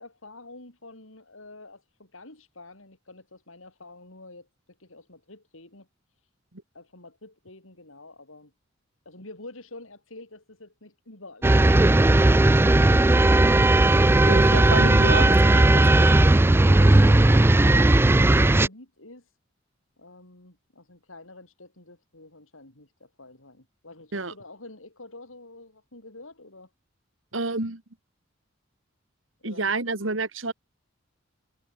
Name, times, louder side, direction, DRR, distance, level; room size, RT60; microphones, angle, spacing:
voice 1, 0.0-5.9 6.7-8.5 9.1-12.6 15.5-19.3 20.0-26.7 29.4-30.0, left 2 dB, 85° left, 5.9 m, -47 dB
sound 1, 11.4-18.7, right 2 dB, 10° right, 0.4 m, -17 dB
voice 2, 14.3-15.8 24.1-24.3 27.3-27.8 29.4-30.5, right 3 dB, 70° right, 2.4 m, -28 dB
head